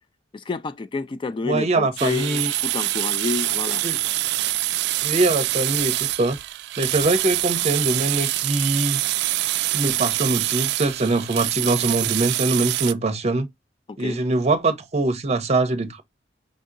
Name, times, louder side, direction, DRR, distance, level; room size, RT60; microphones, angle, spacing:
voice 1, 0.3-3.8 13.9-14.2, left 4 dB, 25° left, 0.3 m, -29 dB
voice 2, 1.4-2.5 3.8-4.0 5.0-6.4 6.8-9.0 9.7-13.5 14.0-16.0, right 2 dB, 35° right, 0.7 m, -23 dB
sound 1, 2.0-12.9, right 15 dB, 65° right, 0.3 m, -25 dB
5.3 x 2.8 x 2.5 m
head